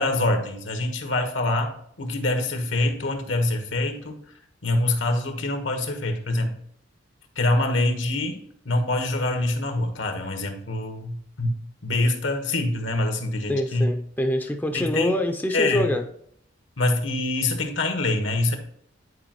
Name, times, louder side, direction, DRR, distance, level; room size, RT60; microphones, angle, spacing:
voice 1, 0.0-4.2 4.6-6.6 7.4-11.5 11.8-13.9 14.7-15.1 15.5-15.9 16.8-18.6, left 2 dB, 75° left, 5 dB, 1.3 m, -25 dB
voice 2, 13.5-16.0, left 1 dB, 10° left, 4 dB, 0.5 m, -25 dB
9.9 x 4.8 x 3.0 m, 0.65 s
head